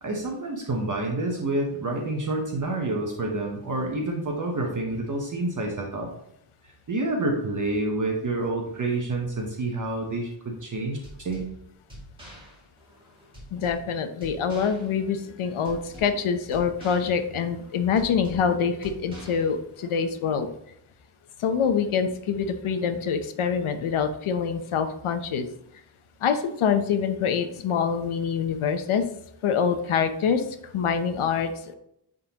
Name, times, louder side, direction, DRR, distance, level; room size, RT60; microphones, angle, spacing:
voice 1, 0.0-6.1 6.6-11.5, right 2 dB, 40° right, 0 dB, 0.9 m, -28 dB
sound 1, 11.0-20.0, equal, 10° right, 2.1 m, -46 dB
voice 2, 13.5-20.5 21.4-25.5 26.2-29.0 29.4-30.4 30.7-31.7, left 6 dB, 90° left, 8 dB, 0.8 m, -25 dB
9.8 x 3.9 x 2.9 m, 0.77 s
wide cardioid pair, 165°, 48 cm